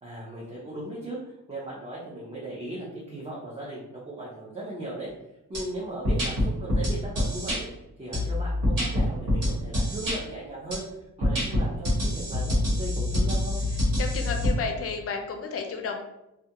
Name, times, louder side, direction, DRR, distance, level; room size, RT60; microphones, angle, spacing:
voice 1, 0.0-5.1 5.5-7.7 8.0-10.8 11.2-13.6, right 1 dB, 20° right, -8 dB, 0.6 m, -37 dB
sound 1, 5.5-5.6 6.0-7.6 8.1-10.2 10.7-10.8 11.2-14.5, left 1 dB, 85° right, 1.3 m, -25 dB
voice 2, 14.0-16.0, left 5 dB, 50° left, 4 dB, 0.4 m, -32 dB
2.3 x 2.3 x 2.8 m, 0.90 s
wide cardioid pair, 110°, 30 cm